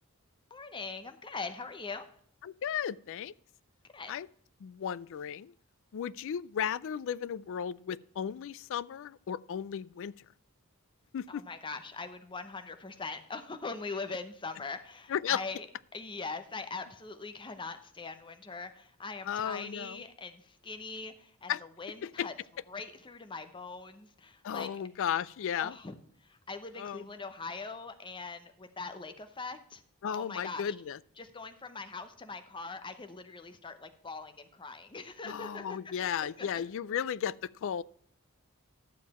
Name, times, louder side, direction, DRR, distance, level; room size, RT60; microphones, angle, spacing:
voice 1, 0.5-2.1 3.9-4.1 11.3-15.7 15.9-22.3 22.7-24.7 25.6-29.8 30.2-30.7 31.2-36.5, left 4 dB, 25° left, 0.8 m, -42 dB
voice 2, 2.4-3.3 4.1-4.3 4.6-5.5 5.9-10.1 11.1-11.4 15.1-15.4 19.2-20.0 21.5-21.6 22.0-22.3 24.4-25.8 26.8-27.1 30.0-31.0 35.2-37.8, left 8 dB, 60° left, 0.3 m, -34 dB
11.5 x 7.3 x 4.2 m
head